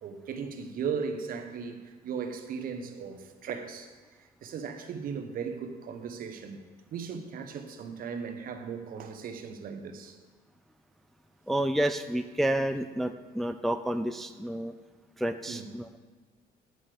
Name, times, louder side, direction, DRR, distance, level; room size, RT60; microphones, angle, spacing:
voice 1, 0.0-3.9 4.2-6.6 6.9-10.2 15.5-15.7, right 6 dB, 60° right, 1.1 m, -37 dB
voice 2, 11.5-14.7 15.2-16.0, right 1 dB, ahead, 0.3 m, -30 dB
9.6 x 7.6 x 5.0 m
cardioid pair, 110°, 17 cm